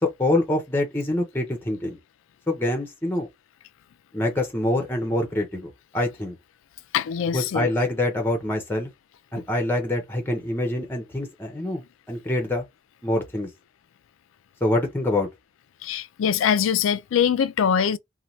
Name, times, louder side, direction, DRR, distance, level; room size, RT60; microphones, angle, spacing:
voice 1, 0.0-2.0 2.5-3.3 4.1-6.4 7.3-8.9 9.3-12.7 13.0-13.5 14.6-15.3, left 1 dB, 10° left, 0.6 m, -25 dB
voice 2, 6.9-7.7 15.8-18.0, left 8 dB, 75° left, 0.3 m, -23 dB
2.7 x 2.2 x 3.0 m
head